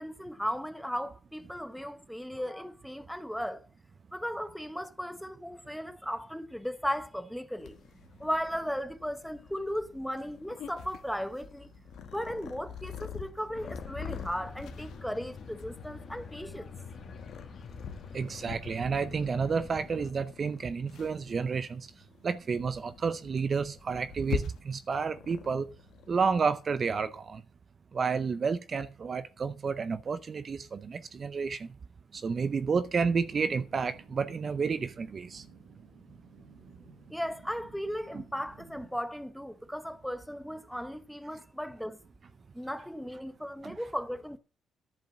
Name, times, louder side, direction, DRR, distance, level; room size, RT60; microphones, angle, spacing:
voice 1, 0.0-3.7 4.1-7.8 8.2-11.7 12.1-16.7 37.1-42.0 42.5-44.4, equal, ahead, 0.9 m, -36 dB
Purr, 7.6-26.3, left 7 dB, 75° left, 1.2 m, -44 dB
sound 1, 13.5-20.1, left 5 dB, 55° left, 1.7 m, -46 dB
voice 2, 18.1-21.9 22.2-25.7 26.1-27.4 27.9-31.7 32.1-35.4 38.1-38.2 43.6-43.8, right 5 dB, 40° right, 0.6 m, -30 dB
sound 2, 32.5-38.9, right 5 dB, 85° right, 3.4 m, -54 dB
10.5 x 5.0 x 7.2 m
cardioid pair, 90°, 0 cm